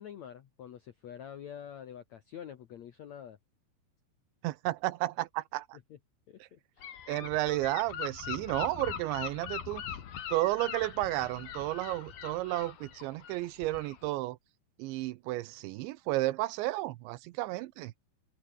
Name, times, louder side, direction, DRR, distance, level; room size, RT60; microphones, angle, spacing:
voice 1, 0.0-3.4 5.9-6.0 6.3-6.9, left 9 dB, 80° left, 1.6 m, -46 dB
voice 2, 4.4-5.8 6.4-6.5 7.1-9.8 10.3-14.4 14.8-17.9, right 18 dB, 85° right, 3.1 m, -32 dB
Gull seagull / Wind, 6.8-14.1, left 9 dB, 55° left, 4.2 m, -42 dB
open air
omnidirectional pair, 5.2 m